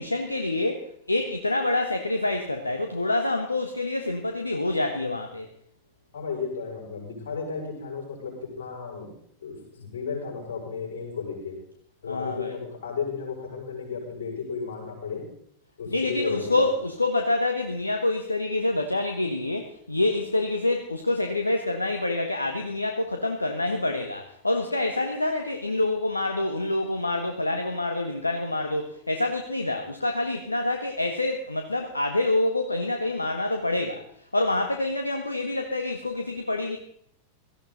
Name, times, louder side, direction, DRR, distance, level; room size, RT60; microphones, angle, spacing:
voice 1, 0.0-5.5 12.1-12.6 15.9-34.0 34.3-36.8, left 2 dB, 80° left, 5 dB, 1.2 m, -27 dB
voice 2, 6.1-9.1 9.4-11.6 12.0-15.2 15.8-16.7, left 5 dB, 60° left, 0 dB, 6.2 m, -34 dB
17.0 x 14.5 x 4.0 m, 0.69 s
figure-of-eight pair, 90°, 0 cm